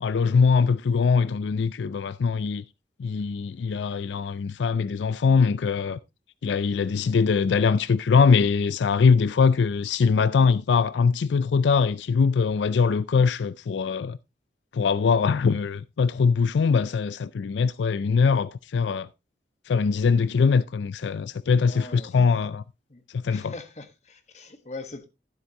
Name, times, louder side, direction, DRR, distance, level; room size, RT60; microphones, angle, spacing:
voice 1, 0.0-2.6 3.0-6.0 6.4-14.2 14.7-19.1 19.7-22.6 23.1-23.5, left 5 dB, 90° left, 0.4 m, -22 dB
voice 2, 21.6-22.1 22.9-23.0 23.3-25.0, left 3 dB, 40° left, 1.3 m, -41 dB
12.5 x 8.0 x 2.9 m
head